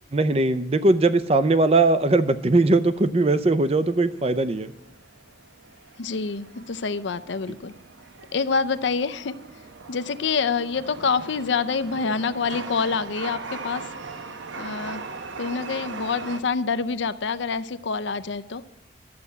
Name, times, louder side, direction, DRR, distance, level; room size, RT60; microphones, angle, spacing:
voice 1, 0.1-4.7, right 2 dB, 30° right, 12 dB, 0.5 m, -20 dB
Chatter / Subway metro underground, 2.2-16.4, right 4 dB, 80° right, 0.8 m, -40 dB
voice 2, 6.0-7.7 8.3-9.3 9.9-13.8 14.6-15.0 15.4-18.6, left 5 dB, 70° left, 12 dB, 0.5 m, -26 dB
12.0 x 6.8 x 8.3 m, 0.94 s
head